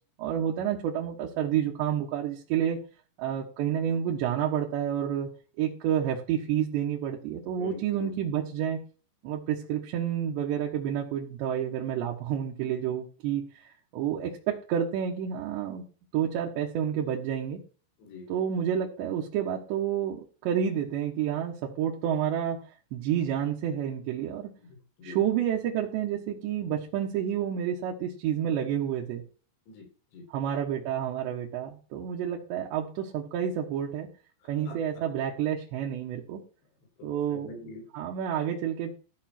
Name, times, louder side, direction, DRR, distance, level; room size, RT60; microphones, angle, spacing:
voice 1, 0.2-2.8 3.2-5.3 5.6-8.8 9.2-15.8 16.1-17.6 18.3-22.6 22.9-24.5 25.0-29.2 30.3-34.1 34.5-36.4 37.0-37.5 37.9-38.9, right 9 dB, 75° right, -2 dB, 3.5 m, -29 dB
voice 2, 7.6-8.2 18.0-18.3 24.6-25.2 29.7-29.9 30.1-30.3 32.2-32.3 34.4-34.8 37.0-37.8, left 4 dB, 65° left, 1 dB, 6.2 m, -44 dB
14.0 x 7.0 x 4.4 m, 0.38 s
omnidirectional pair, 5.4 m